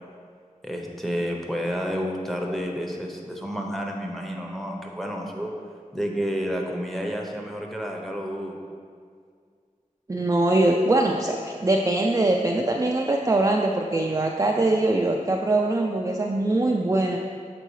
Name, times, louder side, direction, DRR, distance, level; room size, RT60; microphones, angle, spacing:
voice 1, 0.6-5.5 5.9-8.6, equal, ahead, 0 dB, 0.7 m, -30 dB
voice 2, 10.1-17.2, right 2 dB, 25° right, 0 dB, 0.3 m, -22 dB
6.6 x 4.5 x 3.1 m, 2.1 s
wide cardioid pair, 55°, 14 cm